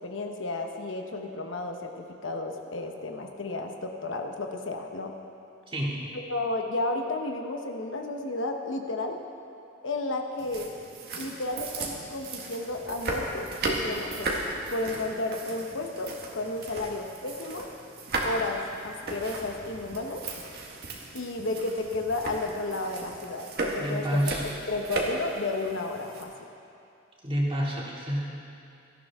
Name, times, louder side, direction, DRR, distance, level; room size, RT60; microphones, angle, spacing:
voice 1, 0.0-5.1 6.3-9.2 9.8-10.7 11.2-17.7 18.2-20.2 21.1-24.2 24.6-26.3, left 2 dB, 65° left, 3 dB, 1.0 m, -32 dB
voice 2, 5.7-6.0 23.8-24.4 27.2-28.3, equal, 25° right, -4 dB, 2.4 m, -28 dB
sound 1, 10.4-26.2, right 2 dB, 55° right, 1.6 m, -36 dB
17.5 x 13.5 x 3.6 m, 2.7 s
head